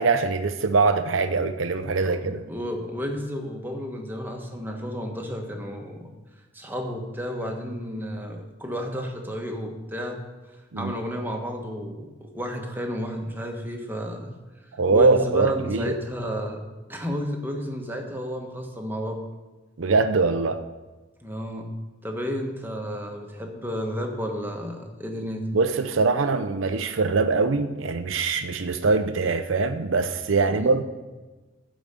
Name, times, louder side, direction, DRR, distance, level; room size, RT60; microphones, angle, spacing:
voice 1, 0.0-2.4 10.7-10.9 14.8-16.0 19.8-20.6 25.5-30.8, right 4 dB, 90° right, 9 dB, 0.6 m, -22 dB
voice 2, 2.1-6.1 6.5-10.2 10.8-14.3 14.9-16.6 16.9-19.2 21.2-21.7 22.0-25.5 30.5-30.8, equal, 10° right, 1 dB, 1.4 m, -32 dB
14.0 x 5.1 x 6.7 m, 1.2 s
head